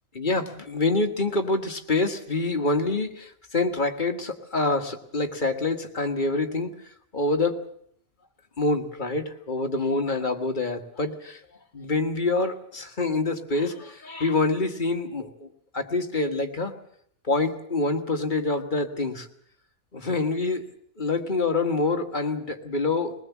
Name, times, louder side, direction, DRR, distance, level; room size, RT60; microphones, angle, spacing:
voice 1, 0.1-6.7 7.1-7.6 8.6-11.4 11.7-15.5 15.7-16.7 17.2-19.3 19.9-20.6 21.0-23.1, left 3 dB, 35° left, 5 dB, 1.5 m, -26 dB
21.0 x 20.0 x 7.2 m, 0.65 s
omnidirectional pair, 1.6 m